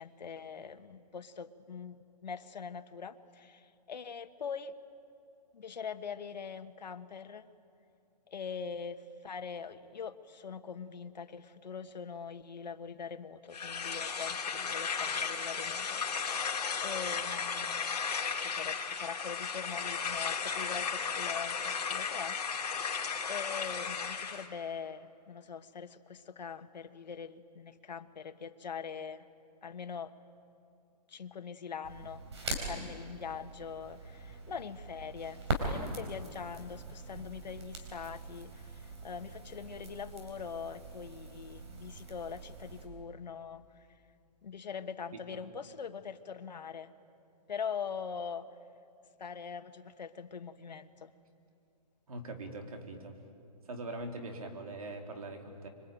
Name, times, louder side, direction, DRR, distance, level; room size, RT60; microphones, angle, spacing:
voice 1, 0.0-4.7 5.5-7.5 8.3-16.3 16.8-18.0 18.4-22.8 23.3-29.2 29.6-30.1 31.1-32.2 32.6-43.9 44.4-46.9 47.5-48.5 49.2-51.1, left 6 dB, 90° left, 8 dB, 1.4 m, -43 dB
sound 1, 13.5-24.5, left 6 dB, 65° left, 3.3 m, -35 dB
Crackle, 31.8-42.9, right 2 dB, 40° right, 4.2 m, -42 dB
voice 2, 52.1-53.2 53.6-55.7, right 2 dB, 55° right, 4 dB, 3.6 m, -42 dB
26.0 x 24.0 x 9.2 m, 2.5 s
hypercardioid pair, 180°, 21 cm